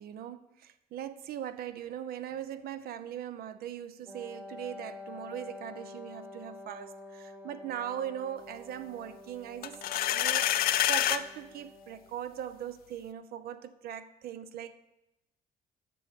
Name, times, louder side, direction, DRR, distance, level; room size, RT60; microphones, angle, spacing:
voice 1, 0.0-9.8 10.1-14.8, right 10 dB, 65° right, 0.6 m, -40 dB
Wind instrument woodwind instrument, 4.0-12.1, left 3 dB, 10° right, 0.7 m, -48 dB
sound 1, 9.6-11.2, left 12 dB, 60° left, 0.5 m, -27 dB
7.6 x 6.4 x 6.7 m
cardioid pair, 110°, 17 cm